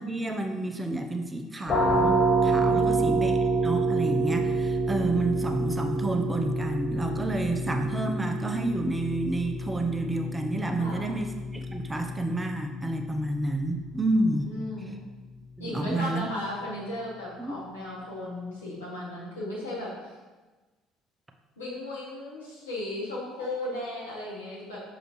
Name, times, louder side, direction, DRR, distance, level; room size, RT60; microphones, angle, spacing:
voice 1, 0.0-14.5 15.6-16.3 17.4-17.6, right 2 dB, 15° right, 4 dB, 0.7 m, -30 dB
sound 1, 1.7-13.2, right 2 dB, 50° left, 1.9 m, -27 dB
voice 2, 2.6-3.0 10.8-11.2 14.3-15.0 15.6-19.9 21.6-24.8, left 1 dB, 85° left, -6 dB, 1.6 m, -36 dB
6.5 x 5.0 x 3.1 m, 1.2 s
hypercardioid pair, 55°, 0 cm